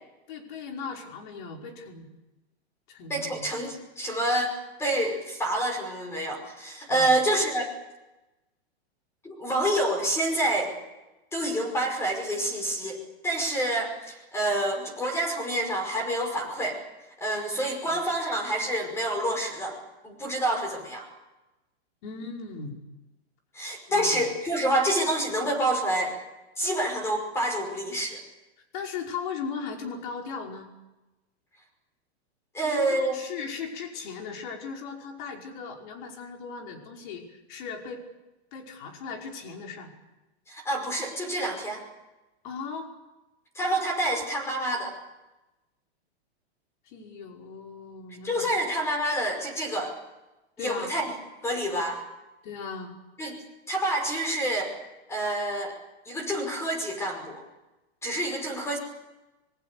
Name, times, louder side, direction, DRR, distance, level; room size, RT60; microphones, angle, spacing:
voice 1, 0.3-2.1 2.9-3.5 6.9-7.1 17.8-17.9 22.0-22.8 23.9-24.2 28.7-30.7 32.6-38.0 38.5-39.9 42.4-42.9 46.9-48.6 50.6-50.9 52.4-52.9, left 5 dB, 45° left, 1 dB, 5.3 m, -38 dB
voice 2, 3.1-4.5 4.8-7.7 9.2-10.7 11.3-16.8 17.2-19.8 20.0-21.1 23.5-26.2 26.6-28.2 32.5-33.2 40.5-41.8 43.6-44.9 48.2-49.9 50.6-51.1 51.4-52.0 53.2-53.4 53.7-54.7 55.1-55.7 56.1-57.4 58.0-58.8, right 1 dB, 10° left, 4 dB, 5.4 m, -27 dB
25.5 x 23.5 x 6.9 m, 1.0 s
supercardioid pair, 170°, 33 cm